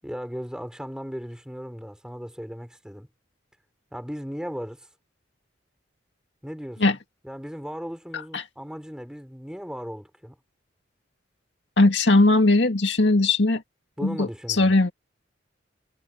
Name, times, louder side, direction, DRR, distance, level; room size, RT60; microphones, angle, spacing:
voice 1, 0.0-3.1 3.9-4.9 6.4-7.0 7.2-10.4 14.0-14.7, equal, 5° right, 5.7 m, -37 dB
voice 2, 11.8-13.6 14.0-14.9, left 2 dB, 70° left, 2.1 m, -19 dB
head